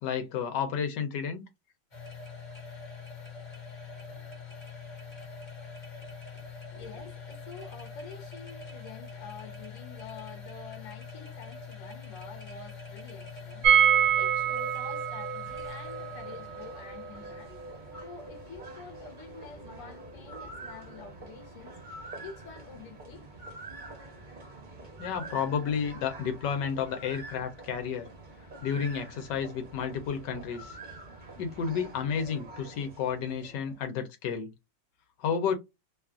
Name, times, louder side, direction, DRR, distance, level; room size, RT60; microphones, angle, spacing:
voice 1, 0.0-1.4 25.0-28.1 28.6-30.8 31.4-34.5 35.2-35.5, left 7 dB, 75° left, 1.2 m, -31 dB
sound 1, 1.9-20.6, left 5 dB, 30° left, 0.9 m, -45 dB
voice 2, 6.3-17.5 17.9-21.8 22.2-23.2, left 5 dB, 55° left, 1.0 m, -48 dB
sound 2, 13.6-19.4 19.7-19.8 20.0-20.1, right 8 dB, 70° right, 1.0 m, -27 dB
sound 3, 15.5-33.9, right 2 dB, 40° right, 0.7 m, -47 dB
3.0 x 2.4 x 2.3 m
omnidirectional pair, 2.0 m